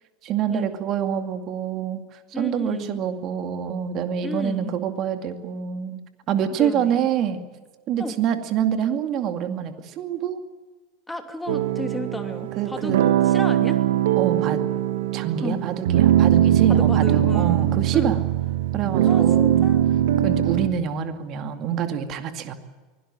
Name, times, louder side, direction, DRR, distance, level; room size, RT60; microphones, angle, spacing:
voice 1, 0.2-6.0 6.3-7.4 7.9-10.4 12.6-13.0 14.2-14.6 15.1-18.2 18.7-19.7 20.2-22.6, right 9 dB, 45° right, 7 dB, 2.4 m, -26 dB
voice 2, 2.3-3.0 4.2-4.7 6.6-7.1 8.0-8.1 11.1-13.8 15.4-15.6 16.7-18.1 19.0-19.9, left 2 dB, 10° left, 6 dB, 2.9 m, -33 dB
sound 1, 11.5-20.7, right 11 dB, 70° right, 1.8 m, -20 dB
24.0 x 17.5 x 9.0 m, 1.4 s
hypercardioid pair, 80°, 0 cm